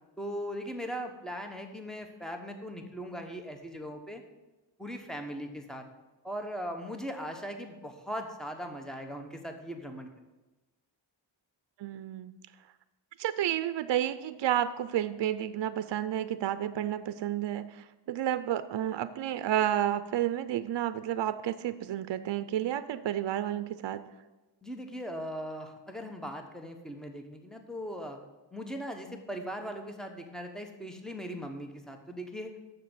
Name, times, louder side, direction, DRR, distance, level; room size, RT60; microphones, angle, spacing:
voice 1, 0.2-4.2 4.8-5.8 6.2-10.1 24.6-28.2 28.5-32.6, equal, ahead, 4 dB, 1.0 m, -39 dB
voice 2, 11.8-12.3 13.2-24.0, right 11 dB, 65° right, 13 dB, 0.5 m, -31 dB
6.7 x 6.6 x 7.7 m, 1.1 s
wide cardioid pair, 115°, 46 cm